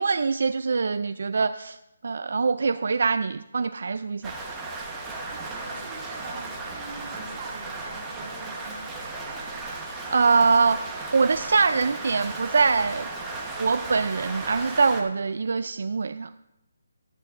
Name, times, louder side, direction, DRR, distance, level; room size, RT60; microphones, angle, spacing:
voice 1, 0.0-1.8 2.0-4.3 9.9-10.8 11.1-13.1 13.6-16.3, right 4 dB, 65° right, 12 dB, 0.3 m, -23 dB
Rain, 4.2-15.0, right 3 dB, 10° right, 1.0 m, -35 dB
voice 2, 5.1-9.2, right 4 dB, 30° right, -3 dB, 2.2 m, -44 dB
14.0 x 12.0 x 2.5 m, 0.94 s
hypercardioid pair, 170°, 0 cm